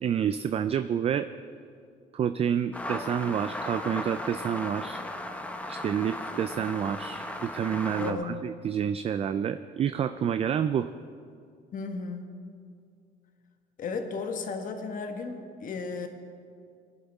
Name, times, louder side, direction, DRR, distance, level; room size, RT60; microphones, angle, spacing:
voice 1, 0.0-1.3 2.1-5.0 5.7-10.9, right 8 dB, 35° right, 11 dB, 0.4 m, -29 dB
sound 1, 2.7-8.1, left 1 dB, 10° left, 1.0 m, -36 dB
voice 2, 8.0-8.5 11.7-12.3 13.8-16.1, left 4 dB, 50° left, 5 dB, 1.4 m, -34 dB
19.0 x 11.0 x 3.6 m, 2.3 s
cardioid pair, 110°, 17 cm